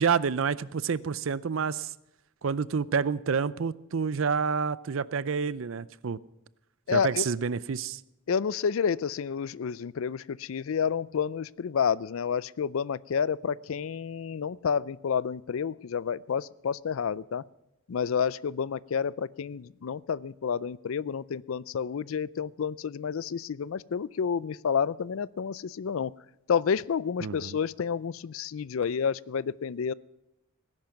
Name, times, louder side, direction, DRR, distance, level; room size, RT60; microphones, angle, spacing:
voice 1, 0.0-1.9 2.4-6.2 6.9-8.0 27.2-27.6, right 6 dB, 70° right, 18 dB, 0.5 m, -28 dB
voice 2, 6.9-7.2 8.3-17.4 17.9-26.1 26.5-29.9, left 6 dB, 75° left, 21 dB, 0.4 m, -30 dB
18.5 x 10.5 x 5.8 m, 0.90 s
head